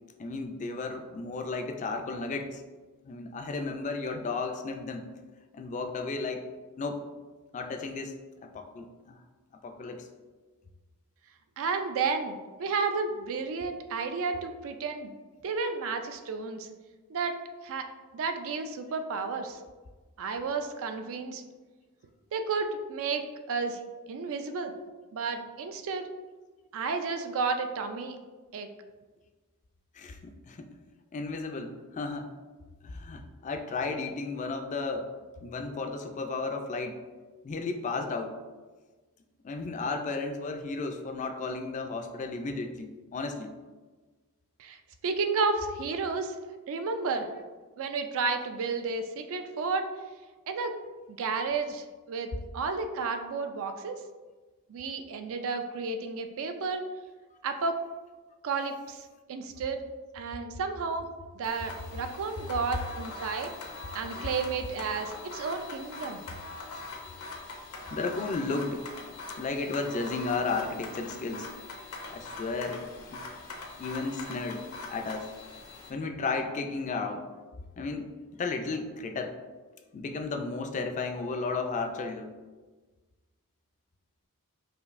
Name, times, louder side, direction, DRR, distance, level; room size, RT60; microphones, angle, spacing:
voice 1, 0.2-2.6 3.0-5.0 5.5-6.4 6.8-7.0 7.5-9.2 9.6-10.1 29.9-30.7 31.1-32.3 32.8-35.1 35.4-37.0 37.4-38.4 39.4-43.5 66.7-66.8 67.9-68.8 69.4-71.5 72.1-73.2 73.8-75.3 75.9-77.2 77.8-78.1 78.4-79.4 79.9-82.3, left 3 dB, 35° left, 5 dB, 0.3 m, -34 dB
voice 2, 11.6-15.1 15.4-16.7 17.1-17.9 18.1-19.6 20.2-21.4 22.3-23.8 24.1-24.7 25.1-26.1 26.7-28.2 28.5-28.7 44.6-44.8 45.0-46.3 46.7-47.3 47.8-49.9 50.5-50.7 51.1-53.9 54.7-56.9 57.4-57.8 58.4-59.8 60.1-61.1 61.3-63.5 63.9-66.2, right 4 dB, 65° right, 7 dB, 0.4 m, -32 dB
sound 1, 61.4-75.9, left 3 dB, 75° left, 0.6 m, -43 dB
4.9 x 2.6 x 2.5 m, 1.3 s
head